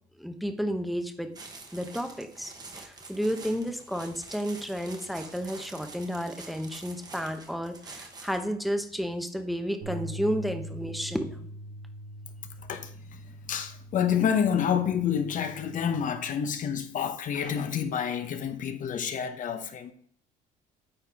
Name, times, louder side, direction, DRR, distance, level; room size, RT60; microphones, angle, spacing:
voice 1, 0.2-1.3 1.7-11.5, equal, ahead, 0.9 m, -32 dB
sound 1, 1.3-8.5, right 3 dB, 25° right, 1.2 m, -47 dB
sound 2, 9.8-16.1, right 1 dB, 70° right, 1.8 m, -42 dB
voice 2, 12.7-19.9, left 8 dB, 50° left, 0.9 m, -29 dB
9.0 x 4.3 x 3.5 m
cardioid pair, 110°, 17 cm